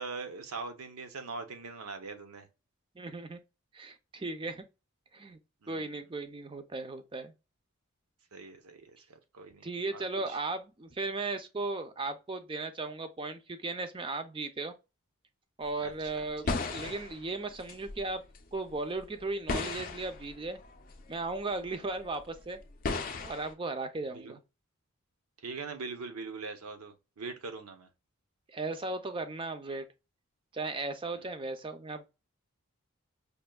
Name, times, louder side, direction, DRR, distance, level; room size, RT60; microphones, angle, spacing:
voice 1, 0.0-2.5 5.6-5.9 8.3-10.4 15.8-16.1 16.4-16.8 24.1-24.4 25.4-27.9 31.1-31.3, right 4 dB, 85° right, 0.8 m, -42 dB
voice 2, 3.0-3.4 3.7-4.6 5.1-5.4 5.7-7.3 9.6-14.7 15.6-16.4 16.7-18.2 18.5-20.6 21.1-22.6 23.2-24.4 28.5-29.9 30.5-32.1, right 3 dB, 25° right, 0.4 m, -36 dB
sound 1, 15.6-18.4 18.7-21.4 21.6-23.5, left 3 dB, 40° left, 0.5 m, -37 dB
5.2 x 2.5 x 2.2 m
head